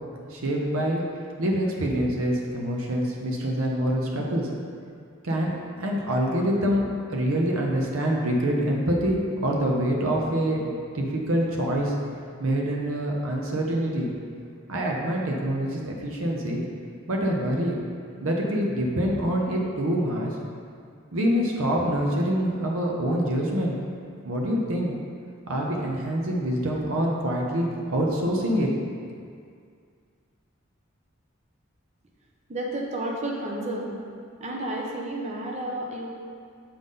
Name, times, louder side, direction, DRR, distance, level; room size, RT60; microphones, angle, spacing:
voice 1, 0.3-1.0 1.4-4.5 5.2-5.5 5.8-6.8 7.1-11.9 12.4-14.1 14.7-16.6 17.1-17.8 18.2-20.3 21.1-23.7 24.2-24.9 25.5-28.7, equal, 85° right, -1 dB, 0.7 m, -25 dB
voice 2, 32.5-33.9 34.4-36.1, right 1 dB, 30° right, -1 dB, 0.7 m, -31 dB
6.9 x 3.7 x 3.9 m, 2.2 s
head